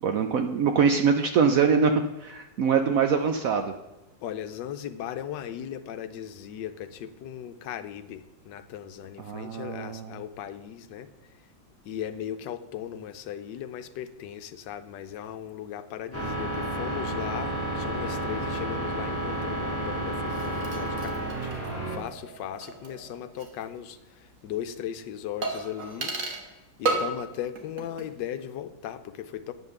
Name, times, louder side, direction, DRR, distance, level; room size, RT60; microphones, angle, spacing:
voice 1, 0.0-1.9 2.2-3.7 9.2-10.2, right 6 dB, 70° right, 6 dB, 0.8 m, -23 dB
voice 2, 4.2-11.1 11.8-21.5 21.8-26.2 26.8-29.5, left 10 dB, 80° left, 10 dB, 1.3 m, -37 dB
sound 1, 16.1-22.0, right 1 dB, 10° right, 2.0 m, -31 dB
sound 2, 20.2-23.6 23.9-24.0 25.4-26.5 26.8-27.3 27.6-28.1 28.4-28.5, right 3 dB, 45° right, 1.6 m, -34 dB
9.7 x 5.4 x 6.6 m, 1.0 s
omnidirectional pair, 2.0 m